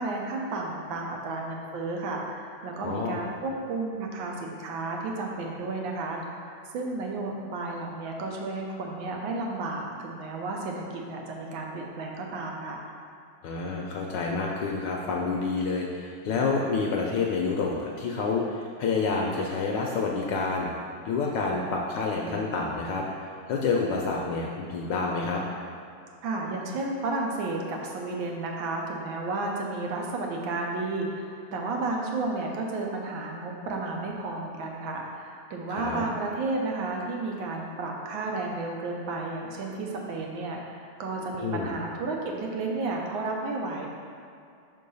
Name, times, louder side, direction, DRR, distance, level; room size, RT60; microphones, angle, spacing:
voice 1, 0.0-6.2 6.7-12.8 26.2-43.9, right 3 dB, 75° right, 0 dB, 1.5 m, -32 dB
voice 2, 2.8-3.2 13.4-20.7 21.1-23.0 23.5-25.4 35.7-36.0 41.4-41.7, left 4 dB, 70° left, -1 dB, 1.2 m, -28 dB
5.5 x 3.8 x 5.4 m, 2.5 s
omnidirectional pair, 2.2 m